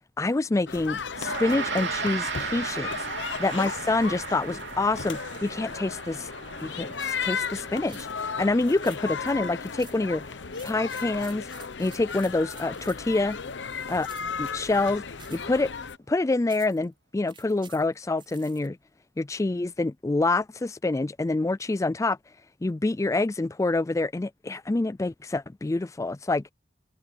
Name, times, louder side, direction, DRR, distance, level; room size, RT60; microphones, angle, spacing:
voice 1, 0.2-3.1 3.4-6.3 6.6-10.2 10.6-11.5 11.8-13.4 13.9-14.1 14.4-15.0 15.3-15.7 16.1-18.8 19.2-22.2 22.6-26.4, left 2 dB, 15° left, 0.4 m, -26 dB
sound 1, 0.7-16.0, left 5 dB, 80° left, 0.9 m, -35 dB
Gong, 1.1-10.7, right 5 dB, 75° right, 3.4 m, -37 dB
sound 2, 7.0-7.3 7.9-8.1 8.8-9.2 9.8-10.1 10.5-13.1 14.0-14.4 15.2-15.6 16.5-16.8 17.3-18.7, right 7 dB, 30° right, 6.1 m, -50 dB
head